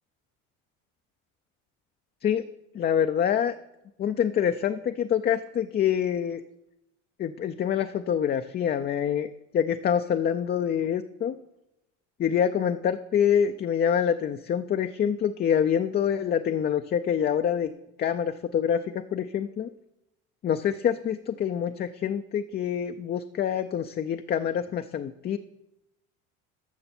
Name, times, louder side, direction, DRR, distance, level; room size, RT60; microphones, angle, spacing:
voice 1, 2.7-3.5 4.0-6.4 7.2-9.3 9.5-11.3 12.2-17.7 18.0-19.7 20.4-25.4, left 8 dB, 30° left, 7 dB, 0.5 m, -26 dB
13.0 x 6.7 x 4.3 m, 0.88 s
supercardioid pair, 90°, 32 cm